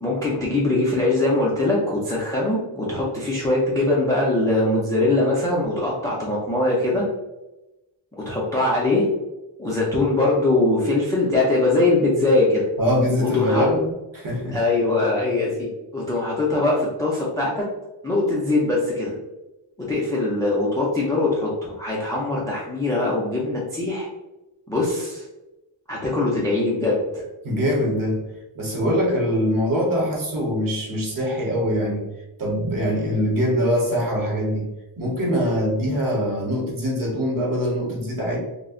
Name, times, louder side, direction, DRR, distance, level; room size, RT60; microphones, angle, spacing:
voice 1, 0.0-7.0 8.3-9.0 9.6-12.6 13.2-13.7 14.5-17.6 18.0-19.2 19.9-24.1 24.7-25.2 25.9-27.2, left 2 dB, 10° left, -5 dB, 0.3 m, -22 dB
voice 2, 12.8-14.6 27.4-28.2 28.5-32.1 32.4-34.7 35.0-38.4, equal, 45° right, -2 dB, 0.9 m, -23 dB
2.4 x 2.1 x 3.6 m, 0.99 s
wide cardioid pair, 175°, 48 cm